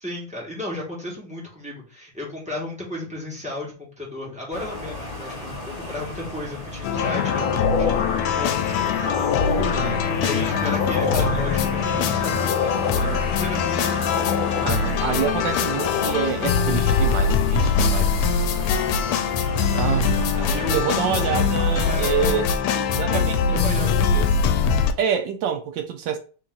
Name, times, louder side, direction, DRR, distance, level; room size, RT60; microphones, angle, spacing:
voice 1, 0.0-9.4 9.7-13.8 18.4-19.2 20.4-20.8 21.8-22.1 23.1-24.3, left 1 dB, 5° right, 1.3 m, -35 dB
sound 1, 4.5-22.5, left 1 dB, 50° left, 0.4 m, -35 dB
sound 2, 6.8-24.9, left 6 dB, 90° left, 1.5 m, -23 dB
sound 3, 6.9-16.1, left 5 dB, 70° left, 1.5 m, -27 dB
voice 2, 9.6-10.0 14.6-18.5 19.7-24.2 25.0-26.2, right 8 dB, 70° right, 1.1 m, -27 dB
3.6 x 2.9 x 3.8 m
omnidirectional pair, 2.3 m